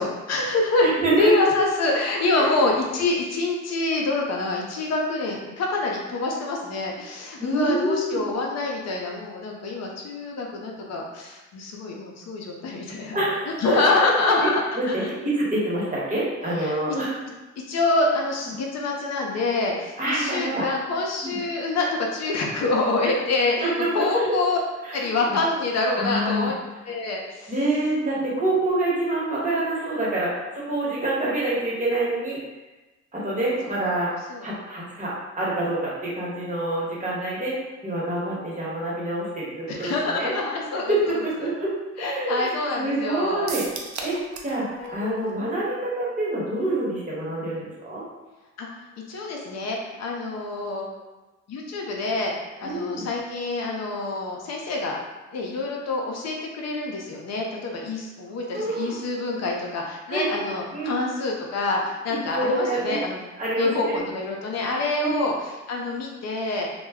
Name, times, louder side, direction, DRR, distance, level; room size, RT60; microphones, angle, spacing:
voice 1, 0.0-13.2 13.6-15.1 16.6-16.8 17.7-24.6 24.9-26.6 26.9-27.5 33.6-33.8 34.3-34.5 39.7-41.5 42.0-43.5 44.8-45.3 48.6-48.7 49.1-51.0 51.5-52.3 52.6-55.0 55.3-63.2 63.6-66.7, left 3 dB, 60° left, -1 dB, 0.6 m, -26 dB
voice 2, 0.8-1.3 2.4-2.6 7.4-8.2 13.1-14.5 14.8-17.1 20.0-20.6 21.2-21.4 23.6-24.3 24.8-25.4 25.9-26.5 27.5-32.4 33.1-34.1 34.4-37.5 37.8-40.3 40.9-43.6 44.0-44.2 44.4-48.0 52.6-53.1 58.5-58.9 60.1-60.3 60.7-61.0 62.1-63.0 63.4-64.0 65.0-65.3, right 2 dB, 25° right, -6 dB, 1.1 m, -26 dB
sound 1, 43.5-44.6 44.8-44.9 45.3-45.4, right 4 dB, 65° right, 0.5 m, -34 dB
2.2 x 2.2 x 3.4 m, 1.1 s
cardioid pair, 90°, 30 cm